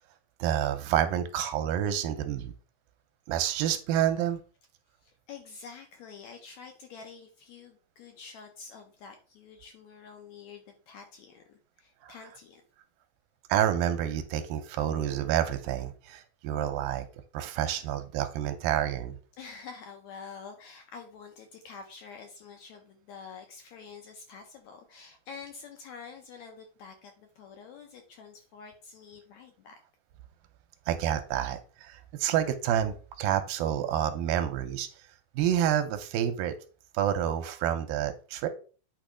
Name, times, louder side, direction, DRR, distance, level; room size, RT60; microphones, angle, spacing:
voice 1, 0.4-2.5 3.3-4.4 12.0-12.1 13.5-17.1 17.3-19.2 30.9-34.9 35.4-36.6 36.9-38.5, right 10 dB, 80° right, 8 dB, 2.4 m, -28 dB
voice 2, 5.0-12.6 19.4-29.8, left 5 dB, 80° left, 4 dB, 1.6 m, -47 dB
8.9 x 3.0 x 4.9 m, 0.38 s
omnidirectional pair, 4.2 m